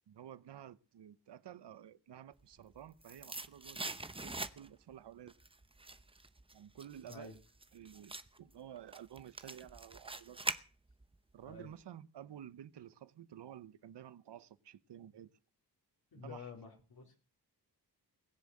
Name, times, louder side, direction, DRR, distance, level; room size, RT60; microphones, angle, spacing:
voice 1, 0.1-5.3 6.5-7.4 7.7-10.4 11.3-15.3 16.2-16.5, right 10 dB, 80° right, 0.9 m, -52 dB
sound 1, 2.5-4.9 5.3-11.2 11.5-11.6, right 2 dB, 15° right, 0.8 m, -44 dB
voice 2, 16.1-17.1, left 5 dB, 65° left, 3.9 m, -49 dB
20.5 x 7.2 x 7.7 m
wide cardioid pair, 130°, 41 cm